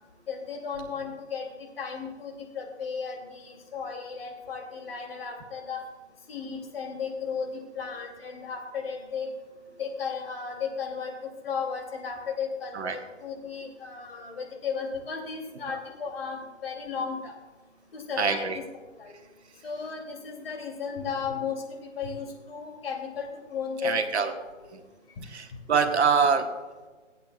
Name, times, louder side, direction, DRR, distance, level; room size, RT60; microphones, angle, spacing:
voice 1, 0.3-1.5 1.8-5.8 6.3-7.5 7.7-9.3 9.8-11.1 11.4-17.3 17.9-18.6 19.0-19.1 19.6-24.3 24.6-24.7, left 6 dB, 50° left, 2 dB, 2.7 m, -35 dB
voice 2, 18.2-18.6 23.8-24.3 24.7-24.8 25.3-26.5, right 6 dB, 60° right, 6 dB, 1.4 m, -25 dB
23.0 x 8.4 x 2.4 m, 1.3 s
hypercardioid pair, 150°, 38 cm